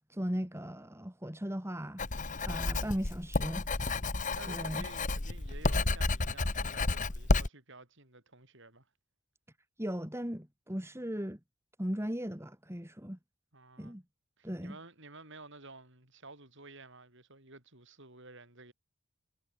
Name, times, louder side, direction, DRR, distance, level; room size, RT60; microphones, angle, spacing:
voice 1, 0.1-2.0 2.5-3.7 4.5-4.9 9.8-11.4 11.8-13.2 13.8-14.0 14.4-14.8, equal, 10° right, 2.6 m, -37 dB
Writing, 2.0-7.5, left 2 dB, 35° left, 1.4 m, -31 dB
voice 2, 4.4-8.9 13.5-14.0 14.4-18.7, right 3 dB, 55° right, 7.2 m, -52 dB
head